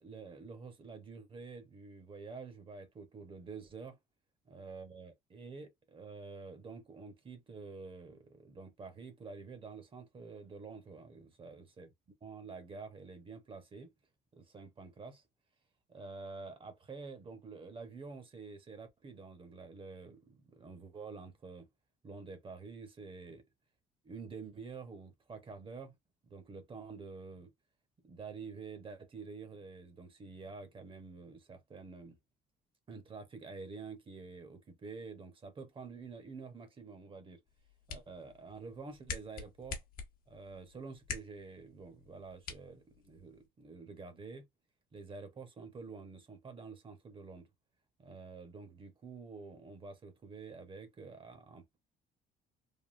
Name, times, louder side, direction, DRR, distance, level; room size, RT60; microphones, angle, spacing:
voice 1, 0.0-4.0 4.5-11.9 12.2-13.9 14.3-15.2 15.9-21.7 22.0-23.4 24.0-25.9 26.2-27.5 28.0-32.2 32.9-37.4 37.9-39.8 40.3-44.5 44.9-47.5 48.0-51.8, right 4 dB, 30° right, 0.7 m, -48 dB
sound 1, 37.5-43.5, left 5 dB, 60° left, 0.9 m, -47 dB
3.4 x 2.3 x 2.3 m
cardioid pair, 110°, 17 cm